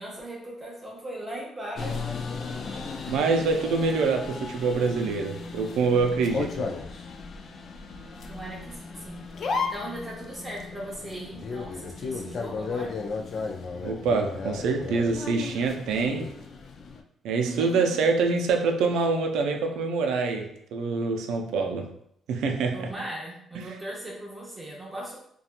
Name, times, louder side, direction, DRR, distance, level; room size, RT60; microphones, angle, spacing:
voice 1, 0.0-2.3 8.3-9.3 9.7-12.9 17.5-18.0 22.7-25.2, right 1 dB, 20° right, 0.7 m, -38 dB
sound 1, 1.8-17.0, left 4 dB, 55° left, 0.3 m, -35 dB
voice 2, 3.1-6.7 13.8-16.3 17.2-21.9 22.3-22.9, right 4 dB, 85° right, 0.4 m, -25 dB
2.8 x 2.2 x 2.4 m
cardioid pair, 90°, 0 cm